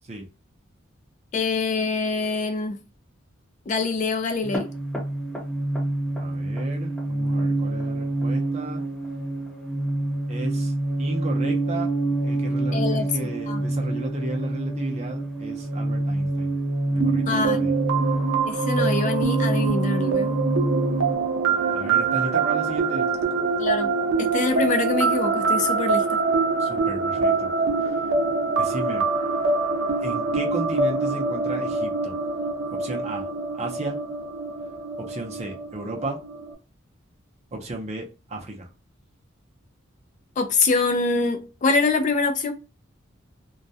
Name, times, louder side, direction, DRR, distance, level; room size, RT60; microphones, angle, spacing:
voice 1, 1.3-2.8 3.7-4.7 12.7-13.6 17.3-17.6 18.4-20.4 23.6-23.9 24.2-26.2 40.4-42.5, left 4 dB, 40° left, 0.3 m, -25 dB
sound 1, 4.4-21.2, right 2 dB, 5° left, 0.8 m, -26 dB
voice 2, 6.2-8.8 10.3-10.7 11.0-11.9 12.2-16.5 16.9-17.7 21.7-23.1 26.6-27.5 27.8-28.0 28.6-29.0 30.0-32.1 32.7-33.3 33.5-34.0 35.0-36.2 37.5-38.7, right 2 dB, 35° right, 0.5 m, -34 dB
sound 2, 17.0-36.5, right 4 dB, 85° right, 0.5 m, -25 dB
2.3 x 2.1 x 2.6 m
head